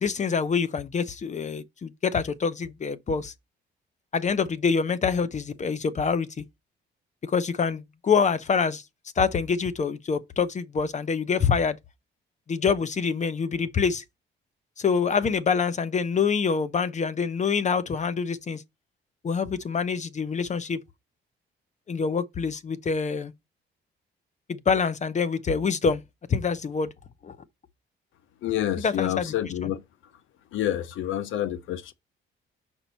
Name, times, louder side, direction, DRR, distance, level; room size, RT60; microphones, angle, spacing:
voice 1, 0.0-3.3 4.1-6.4 7.2-8.8 9.2-11.8 12.5-14.0 14.8-18.6 19.2-20.8 21.9-23.3 24.5-26.0 26.3-26.9 27.2-27.4 28.8-29.3 29.6-29.7, left 5 dB, 35° left, 0.7 m, -26 dB
voice 2, 28.4-29.8 30.5-31.9, left 12 dB, 80° left, 0.7 m, -28 dB
6.4 x 4.6 x 4.1 m
cardioid pair, 90°, 20 cm